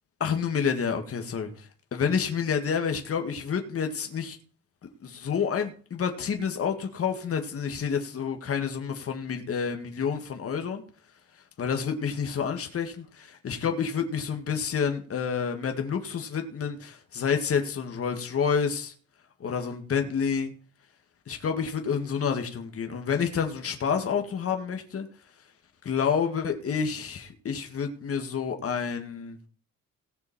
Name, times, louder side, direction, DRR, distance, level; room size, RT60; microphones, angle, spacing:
voice 1, 0.2-4.4 5.0-10.8 11.6-18.9 19.4-20.5 21.3-25.1 25.8-29.4, left 6 dB, 50° left, 2.1 m, -29 dB
18.0 x 6.6 x 4.4 m
cardioid pair, 90°, 30 cm